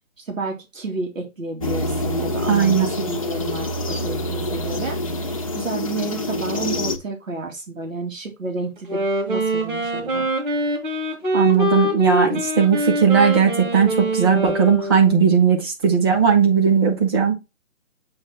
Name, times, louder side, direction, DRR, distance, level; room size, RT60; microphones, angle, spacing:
voice 1, 0.2-5.0 5.3-9.0 9.3-10.3, right 3 dB, 75° right, 2 dB, 2.7 m, -31 dB
sound 1, 1.6-7.0, left 1 dB, 25° left, 0.7 m, -26 dB
voice 2, 2.5-2.9 11.3-17.3, right 6 dB, 20° right, 2 dB, 1.3 m, -17 dB
Wind instrument woodwind instrument, 8.8-15.3, right 1 dB, 40° right, 2.8 m, -24 dB
8.6 x 3.1 x 4.4 m, 0.24 s
figure-of-eight pair, 160°, 40 cm